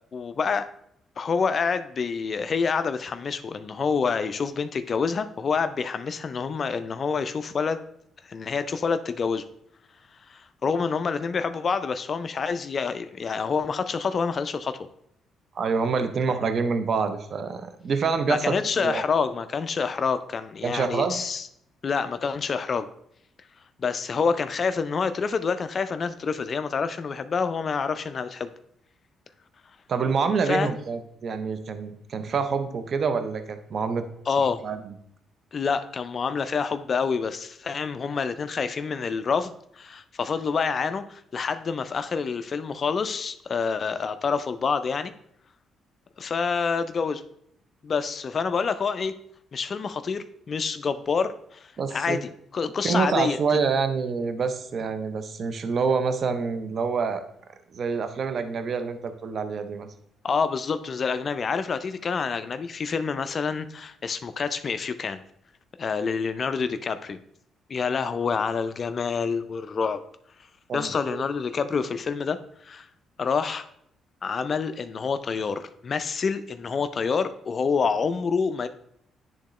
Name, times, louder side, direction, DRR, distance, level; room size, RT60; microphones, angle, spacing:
voice 1, 0.1-0.7 1.2-7.8 8.2-9.4 10.3-14.7 18.3-21.5 21.8-22.9 23.8-28.5 30.5-30.7 34.3-34.6 35.5-45.1 46.2-47.2 47.8-49.1 49.5-53.4 60.2-65.2 65.8-67.2 67.7-70.0 70.7-72.4 72.6-72.9 73.2-73.7 74.2-78.7, left 5 dB, 45° left, 11 dB, 0.4 m, -27 dB
voice 2, 15.5-19.0 20.6-21.2 29.9-34.0 34.4-34.9 51.8-52.2 52.8-57.2 57.7-59.9 70.7-71.2, right 5 dB, 55° right, 9 dB, 0.6 m, -27 dB
9.8 x 3.7 x 3.1 m, 0.72 s
cardioid pair, 90°, 0 cm